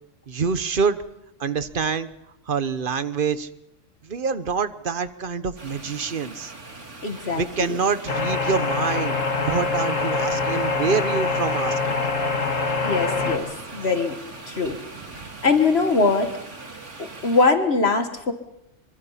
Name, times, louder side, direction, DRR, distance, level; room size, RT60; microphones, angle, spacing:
voice 1, 0.3-1.0 1.4-2.1 2.5-3.5 4.0-6.5 7.3-12.0 15.1-15.2, right 5 dB, 45° right, 13 dB, 1.1 m, -26 dB
sound 1, 5.6-17.5, right 3 dB, 70° right, 2.9 m, -41 dB
voice 2, 7.0-7.8 12.9-14.1 14.5-14.8 15.4-16.3 17.0-18.3, left 4 dB, 55° left, 7 dB, 1.7 m, -22 dB
sound 2, 8.1-13.4, left 4 dB, 85° left, 2.3 m, -24 dB
25.0 x 24.5 x 5.7 m, 0.87 s
omnidirectional pair, 1.3 m